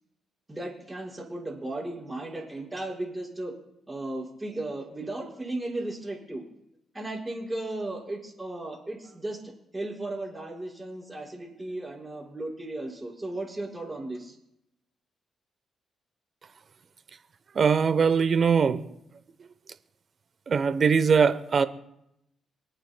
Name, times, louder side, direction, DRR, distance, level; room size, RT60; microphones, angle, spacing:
voice 1, 0.5-3.5 3.9-6.4 6.9-14.4, right 2 dB, 20° right, -2 dB, 5.2 m, -35 dB
voice 2, 17.5-18.8 20.5-21.6, right 6 dB, 50° right, 13 dB, 0.9 m, -21 dB
27.0 x 9.1 x 2.3 m, 0.81 s
supercardioid pair, 55°, 0 cm